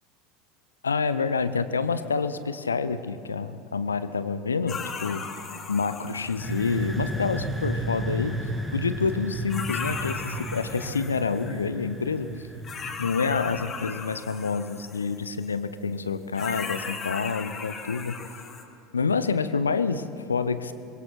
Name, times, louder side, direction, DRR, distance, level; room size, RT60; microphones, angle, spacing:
voice 1, 0.8-5.2 5.7-8.4 8.7-12.3 13.0-18.2 18.9-20.7, left 5 dB, 80° left, 13 dB, 0.8 m, -28 dB
sound 1, 4.7-7.5 9.1-9.2 9.5-11.6 12.6-15.5 16.3-18.6, left 5 dB, 30° left, 2.1 m, -37 dB
sound 2, 6.2-13.9, right 1 dB, 5° right, 2.6 m, -33 dB
26.0 x 22.0 x 4.5 m, 2.7 s
figure-of-eight pair, 75°, 0 cm